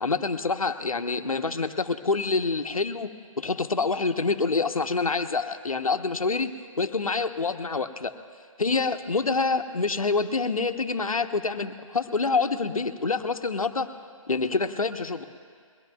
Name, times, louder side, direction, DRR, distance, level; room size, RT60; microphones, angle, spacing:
voice 1, 0.0-3.1 3.4-6.5 6.8-8.1 8.6-13.9 14.3-15.2, left 4 dB, 80° left, 8 dB, 1.0 m, -26 dB
22.5 x 17.0 x 2.3 m, 2.1 s
figure-of-eight pair, 150°, 18 cm